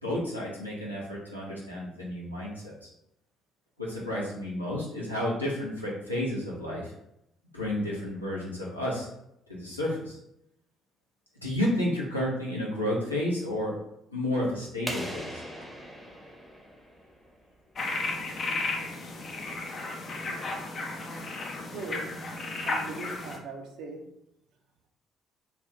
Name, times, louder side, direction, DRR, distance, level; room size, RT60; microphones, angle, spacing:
voice 1, 0.0-2.9 3.8-6.9 7.5-9.1 9.5-10.2 11.4-13.8 14.1-15.4, left 1 dB, 90° left, -6 dB, 0.6 m, -31 dB
sound 1, 14.9-17.5, equal, ahead, 0.8 m, -40 dB
sound 2, 17.8-23.4, left 3 dB, 40° left, 0.5 m, -34 dB
voice 2, 21.6-22.1 22.7-24.0, right 3 dB, 60° right, 2 dB, 0.5 m, -39 dB
2.4 x 2.4 x 3.5 m, 0.80 s
figure-of-eight pair, 50°, 0 cm